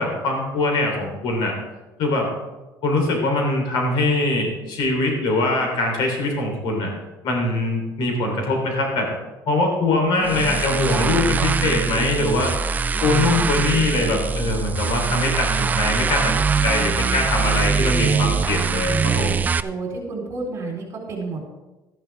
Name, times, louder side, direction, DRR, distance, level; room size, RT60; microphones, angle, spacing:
voice 1, 0.0-1.5 2.0-2.3 2.8-6.9 7.2-9.1 9.5-12.5 13.0-19.4, left 2 dB, 75° left, 1 dB, 3.4 m, -22 dB
voice 2, 10.0-10.4 19.6-21.4, right 3 dB, 40° right, -1 dB, 3.8 m, -31 dB
sound 1, 10.2-19.6, right 5 dB, 20° right, 0.3 m, -22 dB
13.0 x 10.5 x 3.5 m, 1.1 s
cardioid pair, 140°, 8 cm